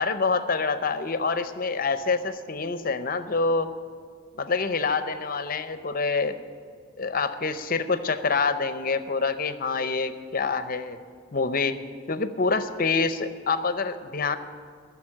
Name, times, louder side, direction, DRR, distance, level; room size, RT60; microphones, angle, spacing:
voice 1, 0.0-3.7 4.4-6.4 7.0-11.0 11.3-11.8 12.1-14.4, left 4 dB, 40° left, 11 dB, 0.6 m, -26 dB
13.5 x 6.9 x 9.7 m, 2.1 s
head